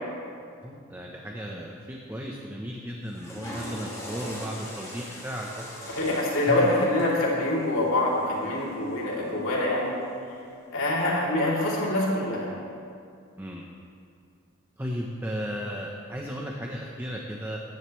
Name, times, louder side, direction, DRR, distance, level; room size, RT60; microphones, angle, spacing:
voice 1, 0.6-5.6 6.5-6.7 13.4-13.7 14.8-17.6, equal, 10° right, -1 dB, 0.9 m, -35 dB
Water / Toilet flush, 3.0-9.3, equal, 15° left, 3.0 m, -42 dB
voice 2, 5.8-9.9 10.7-12.5, left 1 dB, 80° left, -5 dB, 3.1 m, -25 dB
20.5 x 10.5 x 3.2 m, 2.3 s
head